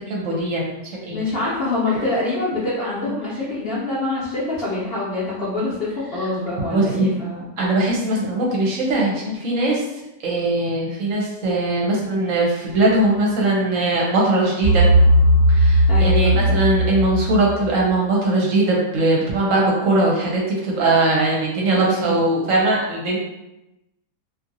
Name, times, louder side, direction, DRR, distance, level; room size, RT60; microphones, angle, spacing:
voice 1, 0.0-1.2 1.9-2.0 6.7-7.1 7.6-9.8 10.2-14.8 15.5-23.2, right 2 dB, 65° right, -3 dB, 1.0 m, -20 dB
voice 2, 1.1-7.4 15.9-16.4 21.7-22.1, left 2 dB, 55° left, -7 dB, 0.8 m, -25 dB
sound 1, 14.6-17.8, equal, 40° right, 1.0 m, -16 dB
2.7 x 2.6 x 2.6 m, 0.92 s
omnidirectional pair, 1.5 m